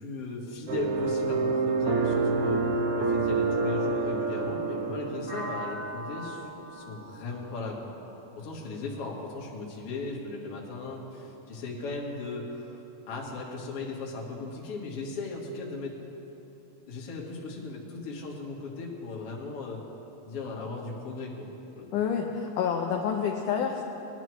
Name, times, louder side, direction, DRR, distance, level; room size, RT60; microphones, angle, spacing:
voice 1, 0.0-2.6 3.0-7.9 8.4-12.8 13.1-16.0 16.9-19.8 20.3-21.5 21.7-21.9, left 3 dB, 50° left, -2 dB, 2.1 m, -37 dB
sound 1, 0.7-5.9, right 4 dB, 90° right, 1.3 m, -27 dB
sound 2, 5.3-9.2, equal, 15° right, 1.0 m, -42 dB
voice 2, 21.9-23.8, left 7 dB, 75° left, 0 dB, 2.1 m, -28 dB
20.5 x 11.0 x 3.1 m, 3.0 s
omnidirectional pair, 4.0 m